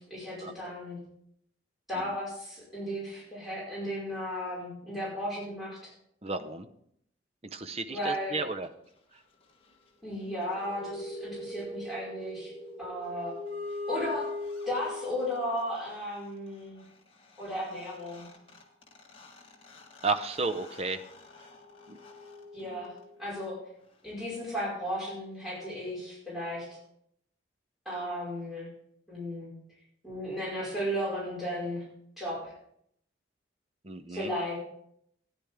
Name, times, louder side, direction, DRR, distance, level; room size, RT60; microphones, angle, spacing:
voice 1, 0.1-1.0 1.9-5.8 7.9-8.4 10.0-12.5 12.8-13.3 13.9-14.3 14.7-16.8 17.4-18.2 22.5-22.9 23.2-23.5 24.0-26.7 27.9-28.7 29.1-29.5 30.0-31.8 32.2-32.5 34.1-34.6, equal, ahead, -8 dB, 5.2 m, -35 dB
voice 2, 6.2-6.7 7.4-8.7 20.0-21.0 21.9-22.0 22.6-22.8 33.8-34.3, right 3 dB, 35° right, 10 dB, 0.6 m, -33 dB
sound 1, 10.2-15.6 17.5-17.6 17.8-23.3, left 2 dB, 30° left, 1.5 m, -41 dB
13.5 x 9.9 x 3.6 m, 0.72 s
head